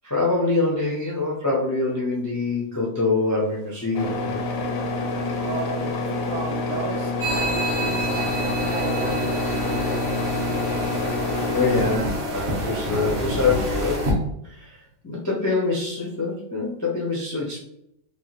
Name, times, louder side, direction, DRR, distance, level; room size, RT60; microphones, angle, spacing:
voice 1, 0.0-4.3 11.5-14.1 14.4-14.8 15.0-17.6, left 3 dB, 25° left, -4 dB, 0.3 m, -25 dB
sound 1, 3.5-14.0, right 1 dB, 20° right, 0.6 m, -44 dB
sound 2, 3.9-12.0, left 2 dB, 65° left, 0.6 m, -27 dB
voice 2, 5.4-10.0, right 5 dB, 75° right, 3 dB, 0.9 m, -34 dB
sound 3, 7.2-14.1, equal, 55° right, 0.8 m, -27 dB
3.3 x 2.3 x 2.9 m, 0.77 s
omnidirectional pair, 1.4 m